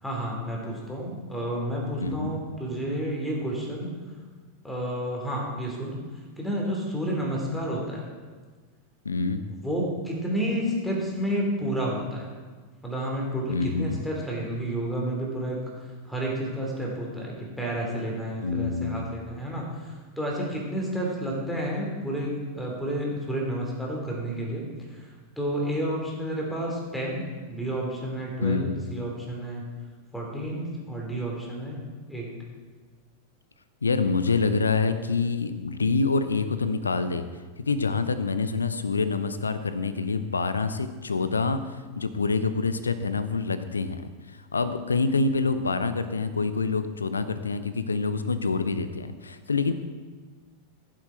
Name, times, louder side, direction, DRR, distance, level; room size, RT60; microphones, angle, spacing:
voice 1, 0.0-4.0 4.6-6.0 6.4-8.1 9.5-12.3 12.8-15.6 16.0-25.1 25.4-27.2 27.5-29.7 30.1-32.3, right 1 dB, 5° left, -2 dB, 3.0 m, -30 dB
voice 2, 2.0-2.3 9.0-9.4 13.5-14.0 18.4-19.1 28.4-28.7 33.8-37.2 37.7-41.6 42.0-44.1 44.5-49.7, left 4 dB, 75° left, 12 dB, 0.7 m, -26 dB
15.0 x 7.7 x 4.4 m, 1.4 s
figure-of-eight pair, 90°, 0 cm